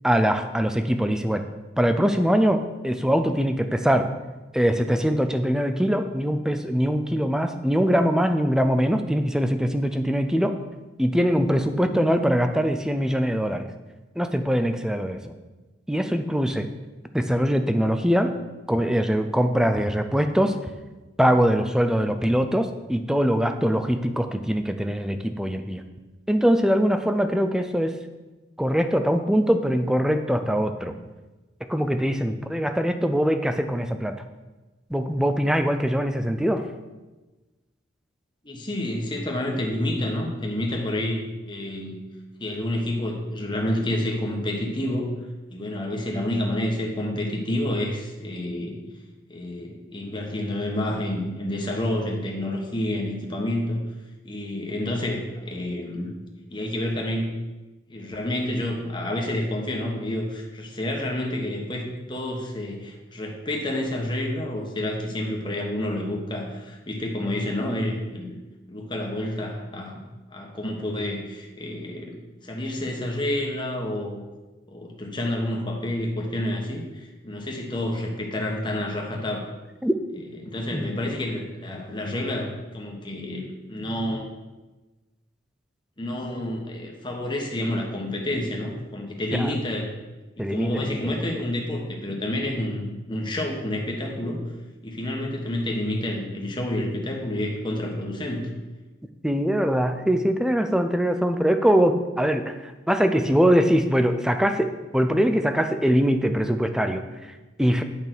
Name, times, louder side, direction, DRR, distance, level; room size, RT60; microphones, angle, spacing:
voice 1, 0.0-1.4 1.8-4.1 4.5-10.6 11.0-13.7 14.2-15.3 15.9-16.7 17.1-18.4 18.7-20.7 21.2-25.8 26.3-28.0 28.6-31.0 31.7-34.1 34.9-36.7 79.8-80.2 80.7-80.8 89.3-89.5 90.4-91.1 99.2-107.8, equal, 5° right, 7 dB, 0.5 m, -22 dB
voice 2, 38.4-41.9 42.4-45.1 45.5-48.8 49.3-53.8 54.2-56.1 56.5-57.4 57.9-68.3 68.7-70.0 70.3-74.2 74.7-79.4 80.4-84.3 86.0-89.9 90.4-94.4 94.8-98.5, left 1 dB, 25° left, 0 dB, 1.3 m, -29 dB
9.1 x 5.3 x 6.1 m, 1.2 s
head